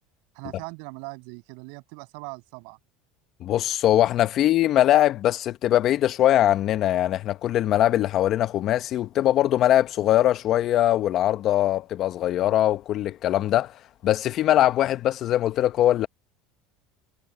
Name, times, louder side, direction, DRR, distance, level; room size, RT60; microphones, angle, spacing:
voice 1, 0.3-2.8, right 36 dB, 70° right, 6.7 m, -40 dB
voice 2, 3.4-13.7 14.0-16.1, left 12 dB, 50° left, 1.1 m, -21 dB
supercardioid pair, 110°, 0 cm